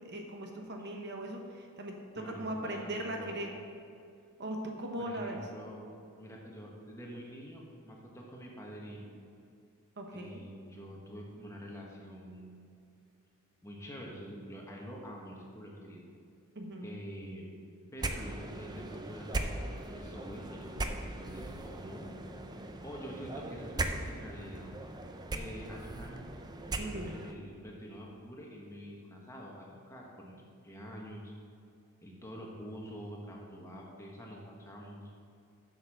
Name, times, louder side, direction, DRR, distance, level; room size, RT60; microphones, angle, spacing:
voice 1, 0.0-1.9 2.2-3.5 4.4-5.4 10.0-10.4 16.5-17.0 26.8-27.2, right 1 dB, 50° right, 2 dB, 1.0 m, -39 dB
voice 2, 2.2-3.4 5.0-9.1 10.1-12.7 13.6-16.0 16.8-17.4 17.9-22.1 22.8-24.7 25.3-26.2 26.7-30.4 30.6-31.3 32.0-35.1, equal, 15° left, -2 dB, 1.3 m, -46 dB
sound 1, 18.0-27.3, right 2 dB, 20° right, 0.5 m, -39 dB
8.0 x 6.6 x 6.5 m, 2.5 s
head